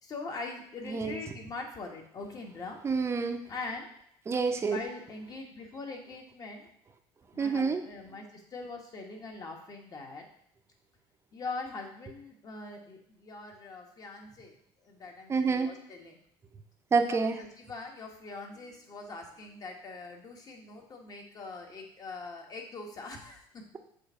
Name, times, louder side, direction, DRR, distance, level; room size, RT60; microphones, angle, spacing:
voice 1, 0.0-2.8 3.5-3.9 4.6-6.7 7.3-10.2 11.3-16.2 17.0-23.6, left 3 dB, 35° left, 2 dB, 1.3 m, -42 dB
voice 2, 0.9-1.2 2.8-3.4 4.3-4.8 7.4-7.8 15.3-15.7 16.9-17.4, right 4 dB, 25° right, 6 dB, 0.7 m, -27 dB
6.8 x 2.6 x 5.6 m, 0.70 s
cardioid pair, 110°, 11 cm